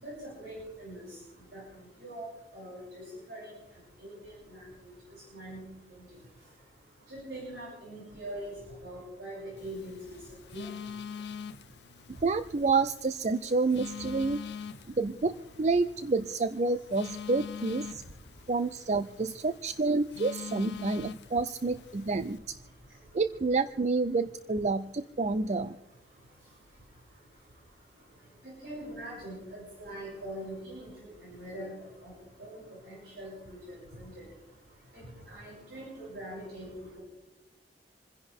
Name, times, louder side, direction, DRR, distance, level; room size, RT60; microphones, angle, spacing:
voice 1, 0.0-1.1 1.5-1.6 2.0-2.3 2.5-3.0 3.3-3.5 4.0-4.1 4.5-4.6 5.3-5.6 7.1-8.5 8.8-10.0 10.5-10.7 28.6-30.9 31.2-31.7 32.0-32.1 32.4-32.5 32.9-33.3 34.0-34.1 35.3-36.7, right 1 dB, 75° right, -7 dB, 7.3 m, -42 dB
Telephone, 9.6-22.4, left 6 dB, 70° left, 0.6 m, -44 dB
voice 2, 12.2-14.4 15.0-18.0 18.5-22.4 23.1-25.8, right 3 dB, 40° right, 11 dB, 0.5 m, -29 dB
28.0 x 10.5 x 3.6 m, 0.99 s
head